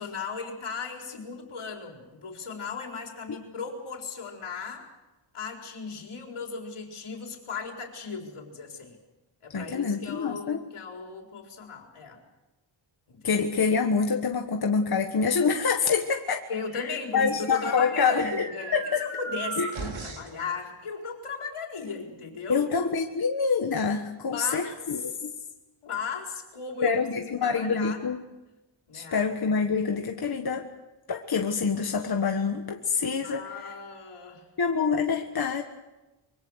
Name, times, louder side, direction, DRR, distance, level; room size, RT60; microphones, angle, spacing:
voice 1, 0.0-4.9 5.3-9.0 9.4-12.2 13.1-13.4 16.5-22.7 24.3-24.8 25.1-25.3 25.8-27.0 27.4-28.0 28.9-29.2 33.2-34.5, left 5 dB, 85° left, 1 dB, 4.5 m, -36 dB
voice 2, 9.5-10.6 13.2-16.4 16.8-18.5 18.7-19.0 19.6-19.7 22.5-25.3 26.8-28.2 28.9-30.7 31.1-33.4 34.6-35.6, left 5 dB, 50° left, 3 dB, 1.5 m, -26 dB
sound 1, 16.9-20.4, right 4 dB, 70° right, 3.9 m, -38 dB
25.5 x 23.5 x 6.5 m, 1.0 s
wide cardioid pair, 160°, 49 cm